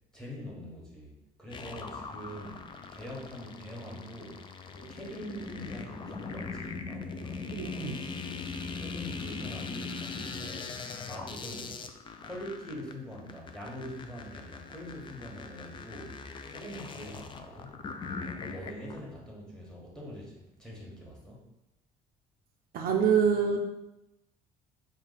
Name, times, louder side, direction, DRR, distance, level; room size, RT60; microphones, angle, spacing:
voice 1, 0.1-2.6 2.9-4.4 4.7-8.0 8.8-10.8 11.1-11.8 12.2-16.2 16.5-17.9 18.4-21.4, equal, 5° left, -3 dB, 1.2 m, -44 dB
sound 1, 1.5-19.0, left 4 dB, 30° left, 0.3 m, -41 dB
voice 2, 7.5-8.0 22.7-23.6, right 7 dB, 60° right, 2 dB, 0.5 m, -25 dB
4.2 x 2.2 x 4.0 m, 0.91 s
cardioid pair, 110°, 17 cm